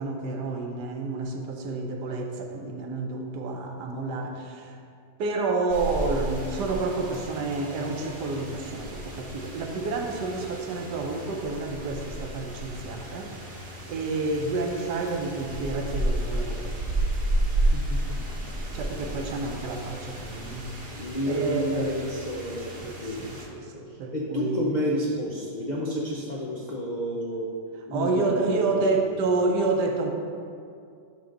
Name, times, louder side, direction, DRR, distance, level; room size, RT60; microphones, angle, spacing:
voice 1, 0.0-4.8 5.2-13.3 13.9-16.7 18.7-20.7 21.3-21.9 22.8-24.7 27.9-30.1, right 3 dB, 75° right, 3 dB, 1.3 m, -29 dB
sound 1, 5.7-23.5, right 1 dB, 40° right, 1.0 m, -32 dB
voice 2, 20.9-23.2 24.1-27.5 27.9-28.8, equal, 85° left, -3 dB, 0.4 m, -30 dB
10.5 x 3.8 x 3.8 m, 2.3 s
omnidirectional pair, 1.9 m